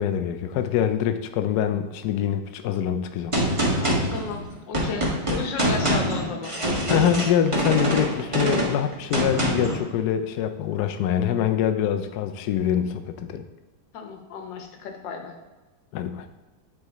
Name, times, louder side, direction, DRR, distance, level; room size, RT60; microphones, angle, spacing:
voice 1, 0.0-3.4 6.9-13.4 15.9-16.3, left 9 dB, 85° left, 8 dB, 0.8 m, -24 dB
Gunshot gunfire, 3.3-9.8, equal, 20° right, 0.9 m, -25 dB
voice 2, 3.8-6.6 13.9-15.4, left 5 dB, 65° left, 4 dB, 1.5 m, -34 dB
8.7 x 3.7 x 4.0 m, 1.2 s
omnidirectional pair, 2.3 m